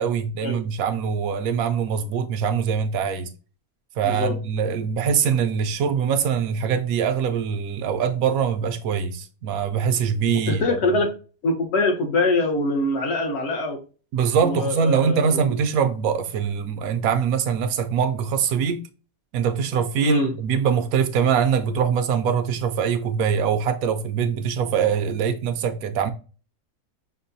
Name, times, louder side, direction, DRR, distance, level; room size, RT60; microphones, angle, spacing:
voice 1, 0.0-3.3 4.0-11.0 14.1-18.8 19.3-26.1, right 7 dB, 75° right, 1.1 m, -23 dB
voice 2, 4.0-4.4 10.5-11.1 11.4-13.8 14.4-15.5 20.0-20.3, left 2 dB, 50° left, 1.1 m, -23 dB
6.0 x 2.2 x 2.6 m
omnidirectional pair, 1.6 m